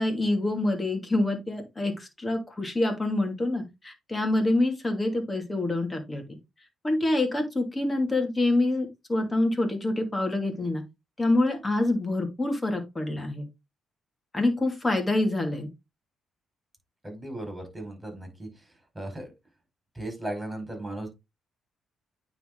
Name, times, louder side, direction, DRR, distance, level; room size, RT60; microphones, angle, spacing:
voice 1, 0.0-6.4 6.8-10.8 11.2-13.5 14.3-15.7, left 2 dB, 20° left, 4 dB, 2.6 m, -26 dB
voice 2, 17.0-18.7 18.9-19.3 19.9-21.1, right 1 dB, 10° right, 4 dB, 4.9 m, -36 dB
9.1 x 4.1 x 3.9 m, 0.23 s
cardioid pair, 90°, 0 cm